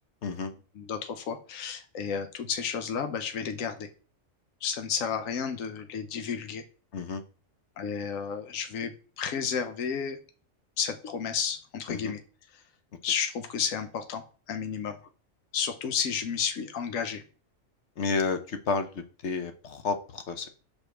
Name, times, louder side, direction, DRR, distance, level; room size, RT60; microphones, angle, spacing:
voice 1, 0.2-0.5 6.9-7.2 11.9-12.1 18.0-20.5, left 4 dB, 65° left, 7 dB, 1.2 m, -31 dB
voice 2, 0.8-3.9 4.6-6.6 7.8-10.2 10.8-12.2 13.0-15.0 15.5-17.2, left 7 dB, 85° left, 7 dB, 1.2 m, -32 dB
5.2 x 4.4 x 6.1 m, 0.38 s
omnidirectional pair, 1.3 m